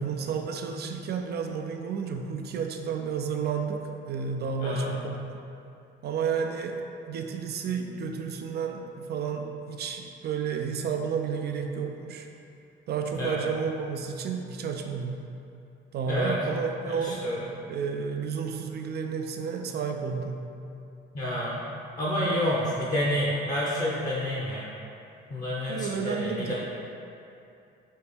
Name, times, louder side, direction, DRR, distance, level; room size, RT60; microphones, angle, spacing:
voice 1, 0.0-5.2 6.0-12.3 12.9-15.2 15.9-17.2 17.7-20.4 25.7-26.5, right 6 dB, 55° right, 4 dB, 0.4 m, -31 dB
voice 2, 16.9-17.5 21.1-21.7 22.0-24.7 25.3-26.5, left 1 dB, 40° left, -6 dB, 0.7 m, -29 dB
4.2 x 2.9 x 3.6 m, 2.7 s
cardioid pair, 90°, 20 cm